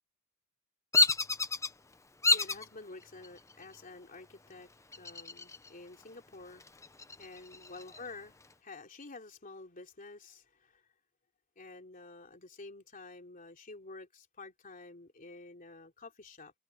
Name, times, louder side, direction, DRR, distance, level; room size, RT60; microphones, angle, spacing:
Bird vocalization bird call bird song, 0.9-1.7 2.2-2.7 3.2-3.7 4.9-5.7 6.0-6.1 6.6-8.0, left 3 dB, 15° left, 0.7 m, -28 dB
voice 1, 2.3-6.6 7.2-10.8 11.6-16.5, left 3 dB, 40° left, 3.3 m, -50 dB
head